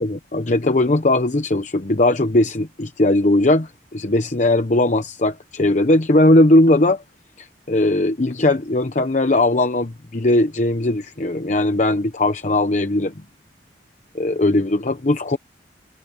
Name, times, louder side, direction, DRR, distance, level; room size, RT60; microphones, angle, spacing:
voice 1, 0.0-7.0 7.4-13.1 14.1-15.4, left 1 dB, 45° left, 0.9 m, -18 dB
head